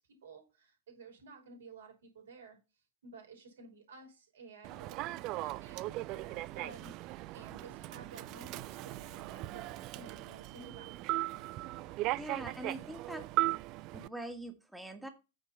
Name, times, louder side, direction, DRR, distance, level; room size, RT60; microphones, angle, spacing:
voice 1, 0.0-2.6 3.0-11.6, right 4 dB, 65° right, 3 dB, 3.1 m, -54 dB
Human voice / Subway metro underground, 4.6-14.1, right 18 dB, 40° right, 0.3 m, -38 dB
sound 1, 7.6-12.8, right 1 dB, 70° left, 2.6 m, -63 dB
voice 2, 12.2-13.2 13.9-15.1, right 1 dB, 5° right, 6 dB, 1.5 m, -43 dB
8.5 x 4.4 x 5.5 m, 0.27 s
figure-of-eight pair, 90°, 0 cm